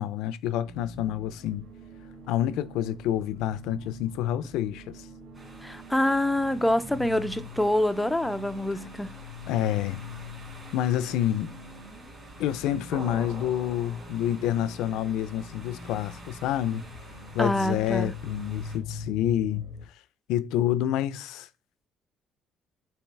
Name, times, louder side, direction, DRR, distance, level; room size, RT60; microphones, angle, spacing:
voice 1, 0.0-1.6 2.3-5.1 9.5-10.0 10.7-11.6 12.4-16.8 17.3-19.6 20.3-21.5, left 11 dB, 85° left, 0.5 m, -28 dB
sound 1, 0.6-19.9, left 2 dB, 85° right, 2.2 m, -44 dB
sound 2, 5.3-18.8, right 2 dB, 20° right, 2.3 m, -50 dB
voice 2, 5.6-9.2 17.4-18.1, left 1 dB, 5° left, 0.5 m, -26 dB
sound 3, 12.9-14.6, right 3 dB, 45° right, 2.8 m, -43 dB
7.1 x 2.9 x 4.6 m
cardioid pair, 135°, 0 cm